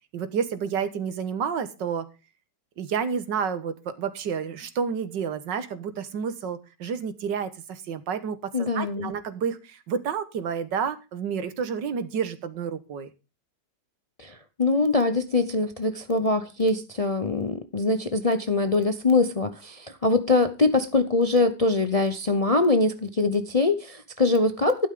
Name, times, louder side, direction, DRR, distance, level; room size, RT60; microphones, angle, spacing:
voice 1, 0.1-2.1 2.8-13.1, right 7 dB, 80° right, 1.9 m, -30 dB
voice 2, 8.5-9.1 14.2-24.9, left 3 dB, 35° left, 0.6 m, -23 dB
13.0 x 11.5 x 3.7 m
omnidirectional pair, 1.9 m